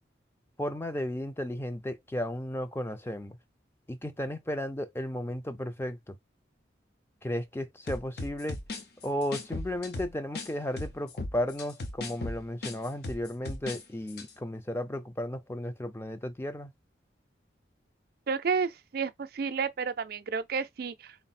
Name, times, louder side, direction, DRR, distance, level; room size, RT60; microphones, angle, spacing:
voice 1, 0.6-3.4 3.9-6.2 7.2-8.6 9.0-16.7, left 1 dB, 15° left, 0.4 m, -34 dB
sound 1, 7.9-10.5 10.8-13.8 14.1-14.3, left 2 dB, 60° left, 0.7 m, -37 dB
voice 2, 18.3-21.2, right 5 dB, 55° right, 0.4 m, -31 dB
3.8 x 2.1 x 4.1 m
head